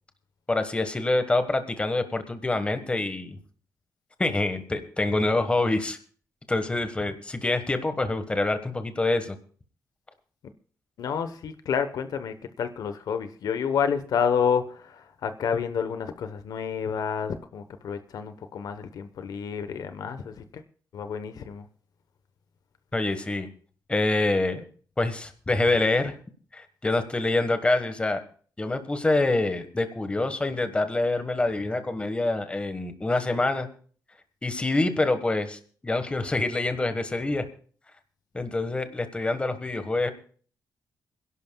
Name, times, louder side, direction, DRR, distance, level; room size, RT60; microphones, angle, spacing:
voice 1, 0.5-3.4 4.2-6.0 6.5-9.3 22.9-23.5 23.9-24.6 25.0-26.1 26.5-28.2 28.6-33.7 34.4-37.4 38.3-40.1, left 2 dB, 15° left, 8 dB, 1.4 m, -26 dB
voice 2, 11.0-20.6 20.9-21.6, left 7 dB, 70° left, 10 dB, 1.0 m, -29 dB
27.0 x 11.5 x 2.3 m, 0.43 s
cardioid pair, 130°, 7 cm